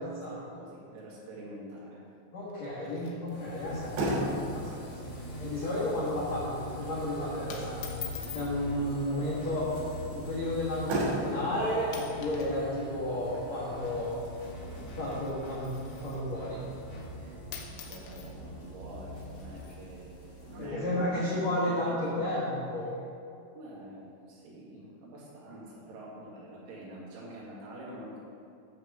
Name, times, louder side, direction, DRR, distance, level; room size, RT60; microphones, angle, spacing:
voice 1, 0.0-0.4 2.3-5.1 5.4-8.0 8.3-9.8 10.1-14.2 14.9-15.8 16.0-16.6 20.6-22.9, left 1 dB, 70° left, -10 dB, 1.7 m, -32 dB
voice 2, 0.5-2.0 5.2-5.3 17.1-22.2 23.5-28.2, right 1 dB, 85° right, -6 dB, 4.6 m, -46 dB
sound 1, 2.5-3.8 4.0-4.1 4.4-4.7 5.1-5.4 5.7-6.0 6.8-7.0 7.5-8.5 9.5-9.8 10.5-10.6 11.3-11.5 11.8-12.6 12.8-16.3 17.2-17.3 17.5-19.8, left 9 dB, 85° left, 3.5 m, -47 dB
sound 2, 3.3-20.7, equal, 40° left, 1.5 m, -43 dB
Motor vehicle (road), 3.9-16.5, right 1 dB, 65° right, 2.9 m, -39 dB
11.5 x 7.1 x 3.6 m, 2.7 s
omnidirectional pair, 5.7 m